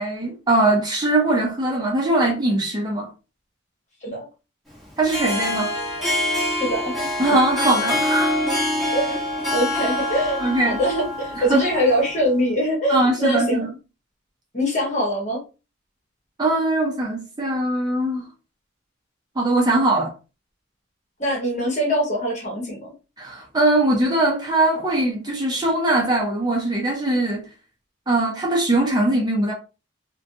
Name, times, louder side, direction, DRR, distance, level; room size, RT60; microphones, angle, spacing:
voice 1, 0.0-3.1 5.0-5.7 7.2-8.4 10.4-10.8 11.4-11.6 12.9-13.7 16.4-18.2 19.4-20.1 23.2-27.4 28.1-29.5, right 2 dB, 20° right, 0.5 m, -21 dB
Harp, 4.9-12.2, left 1 dB, ahead, 1.0 m, -25 dB
voice 2, 6.6-7.1 8.9-9.2 9.5-13.6 14.5-15.4 21.2-22.9, equal, 35° left, 1.1 m, -23 dB
2.5 x 2.2 x 2.5 m
head